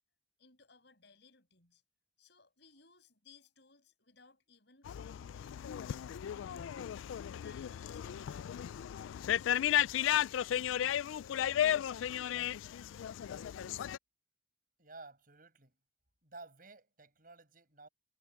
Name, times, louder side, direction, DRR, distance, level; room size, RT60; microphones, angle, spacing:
voice 1, 0.4-1.8 2.2-5.5 5.8-7.1 7.4-10.3, left 5 dB, 60° left, 6.8 m, -64 dB
sound 1, 4.9-14.0, left 10 dB, 75° left, 0.3 m, -34 dB
voice 2, 14.8-15.8 16.2-17.9, right 3 dB, 45° right, 7.8 m, -53 dB
head